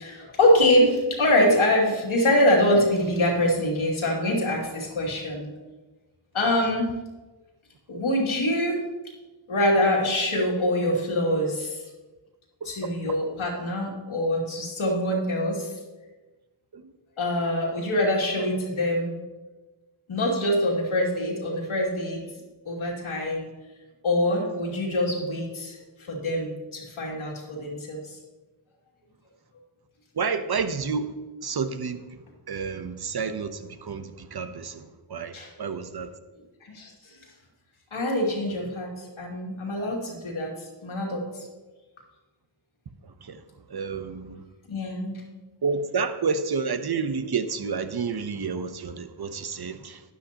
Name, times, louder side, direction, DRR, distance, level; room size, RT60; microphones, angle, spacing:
voice 1, 0.0-5.5 6.3-6.9 7.9-8.8 9.5-11.8 12.6-15.7 17.2-19.2 20.1-22.2 22.6-23.5 24.0-25.8 26.1-28.2 35.3-35.5 36.6-36.9 37.9-41.3 44.7-45.2, left 1 dB, 80° left, -2 dB, 2.7 m, -24 dB
voice 2, 12.6-13.2 16.7-16.9 30.2-31.1 31.4-32.0 32.5-34.8 35.1-36.1 43.2-43.4 43.7-44.4 45.6-50.0, right 5 dB, 50° right, 10 dB, 0.9 m, -30 dB
12.0 x 10.0 x 2.9 m, 1.2 s
cardioid pair, 55°, 48 cm